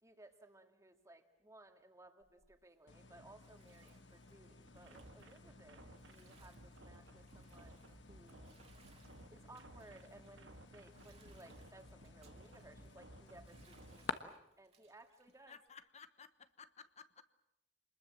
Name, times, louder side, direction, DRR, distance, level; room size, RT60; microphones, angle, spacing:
voice 1, 0.0-8.6 9.3-15.6, right 2 dB, 15° right, 6 dB, 2.1 m, -61 dB
Bathtub (filling or washing), 2.2-15.7, right 5 dB, 35° right, 2.4 m, -72 dB
sound 1, 2.9-14.1, left 4 dB, 70° left, 1.3 m, -53 dB
sound 2, 4.7-14.0, right 2 dB, 75° right, 1.6 m, -59 dB
voice 2, 15.3-17.2, left 6 dB, 40° left, 13 dB, 1.1 m, -57 dB
27.0 x 21.0 x 7.6 m, 0.81 s
head